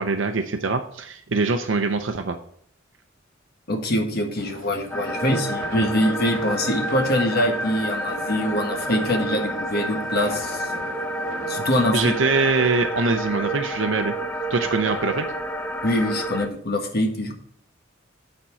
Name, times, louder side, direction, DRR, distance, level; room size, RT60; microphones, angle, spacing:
voice 1, 0.0-2.4 11.9-14.1 14.5-15.3, right 3 dB, 70° right, 6 dB, 0.6 m, -23 dB
voice 2, 3.7-10.7 11.5-12.1 15.8-17.3, left 1 dB, 55° left, 3 dB, 1.5 m, -24 dB
sound 1, 4.4-12.2, right 3 dB, 85° right, 1.0 m, -40 dB
sound 2, 4.9-16.5, right 1 dB, 10° left, 0.5 m, -29 dB
8.7 x 4.4 x 5.6 m, 0.67 s
head